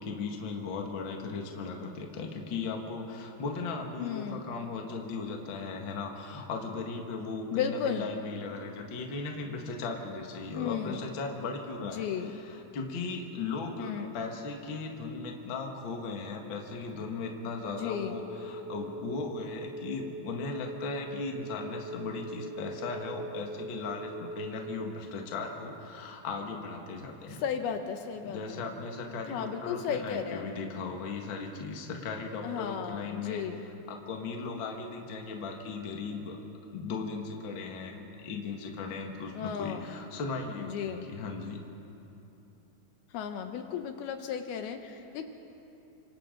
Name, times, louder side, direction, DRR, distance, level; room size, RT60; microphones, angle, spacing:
voice 1, 0.0-27.4 28.2-33.4 33.9-36.4 36.7-41.6, left 4 dB, 45° left, 1 dB, 1.5 m, -37 dB
voice 2, 4.0-4.4 7.5-8.1 10.6-11.0 11.8-12.4 13.8-14.2 17.7-18.2 27.4-28.7 29.3-30.5 32.4-33.6 39.3-39.9 40.6-41.1 43.1-45.2, left 8 dB, 75° left, 6 dB, 2.6 m, -34 dB
sound 1, 18.0-24.9, right 1 dB, 25° right, 1.9 m, -41 dB
30.0 x 26.0 x 3.9 m, 2.9 s
omnidirectional pair, 4.8 m